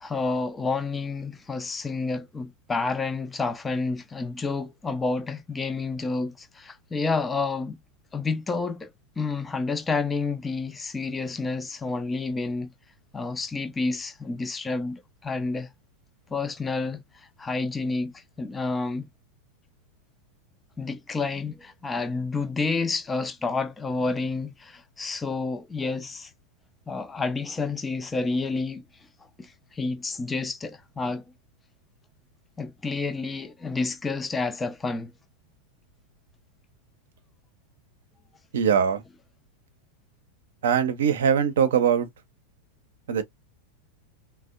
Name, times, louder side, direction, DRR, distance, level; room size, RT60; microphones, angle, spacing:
voice 1, 0.0-7.8 8.1-8.9 9.2-12.7 13.1-15.7 16.3-19.1 20.8-26.3 26.9-28.8 29.4-31.2 32.6-35.1, left 3 dB, 15° left, 0.5 m, -29 dB
voice 2, 38.5-39.0 40.6-42.1 43.1-43.2, right 7 dB, 60° right, 0.7 m, -21 dB
3.4 x 2.1 x 2.4 m
figure-of-eight pair, 90°, 0 cm